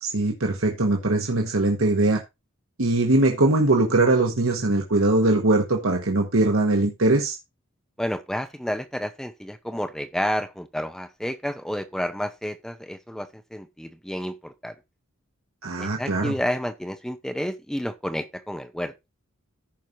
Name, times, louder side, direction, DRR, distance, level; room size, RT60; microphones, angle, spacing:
voice 1, 0.0-2.2 2.8-7.4 15.6-16.3, right 2 dB, 85° right, 1.6 m, -21 dB
voice 2, 8.0-14.7 15.8-18.9, equal, 5° left, 0.6 m, -30 dB
15.0 x 5.4 x 3.0 m
head